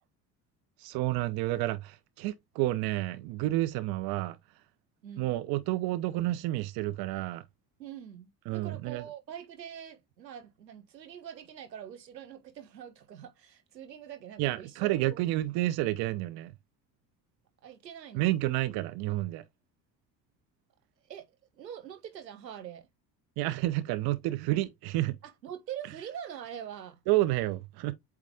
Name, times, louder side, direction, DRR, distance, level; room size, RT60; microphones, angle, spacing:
voice 1, 0.8-4.4 5.2-7.4 8.5-9.0 14.4-16.5 18.1-19.4 23.4-25.1 27.1-27.9, right 16 dB, 50° right, 0.8 m, -30 dB
voice 2, 5.0-5.3 7.8-15.2 17.6-18.3 21.0-21.3 21.5-22.9 25.2-27.0, right 9 dB, 80° right, 1.1 m, -44 dB
8.2 x 3.3 x 3.4 m
figure-of-eight pair, 60°, 49 cm